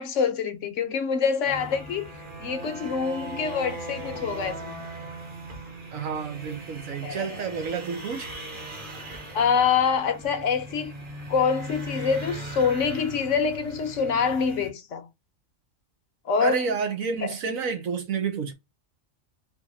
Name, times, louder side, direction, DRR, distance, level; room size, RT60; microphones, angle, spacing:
voice 1, 0.0-2.1 2.4-4.9 7.0-7.4 9.3-10.9 11.3-15.1 16.2-16.6 17.2-17.3, left 6 dB, 65° left, 1.1 m, -25 dB
sound 1, 1.4-14.7, right 1 dB, 40° right, 1.4 m, -39 dB
voice 2, 5.9-8.3 16.4-18.5, right 5 dB, 85° right, 1.4 m, -29 dB
4.1 x 3.0 x 4.1 m
omnidirectional pair, 1.4 m